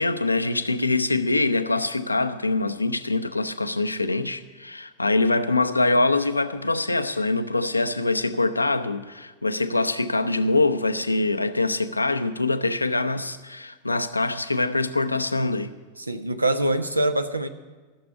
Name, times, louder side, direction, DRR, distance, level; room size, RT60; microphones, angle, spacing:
voice 1, 0.0-15.7, left 2 dB, 85° left, 0.6 m, -24 dB
voice 2, 16.0-17.5, right 1 dB, 85° right, 0.7 m, -24 dB
14.5 x 6.8 x 9.5 m
figure-of-eight pair, 90°, 0 cm